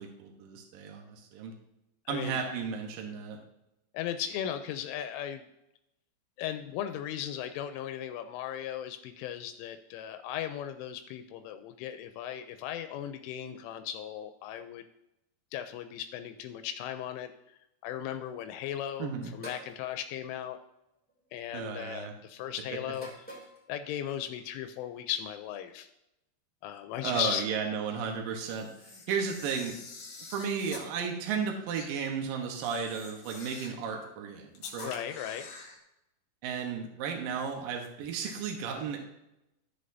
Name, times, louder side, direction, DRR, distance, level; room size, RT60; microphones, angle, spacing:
voice 1, 0.0-1.5 2.1-3.4 19.0-19.4 21.5-22.1 27.0-29.7 30.3-34.9 36.4-39.0, right 6 dB, 80° right, 2 dB, 2.0 m, -34 dB
voice 2, 2.1-2.4 3.9-5.4 6.4-14.8 15.5-17.3 17.8-20.6 21.3-23.1 23.7-25.9 26.6-27.5 29.1-29.2 34.8-35.5, left 10 dB, 85° left, 8 dB, 3.1 m, -37 dB
sound 1, 19.4-19.7 20.9-21.3 22.9-23.6, right 1 dB, 5° left, 0.8 m, -45 dB
Camera, 28.3-30.9 31.7-31.9 32.5-33.8 34.5-35.8, left 4 dB, 55° left, 2.8 m, -46 dB
14.0 x 6.6 x 2.7 m, 0.88 s
omnidirectional pair, 5.6 m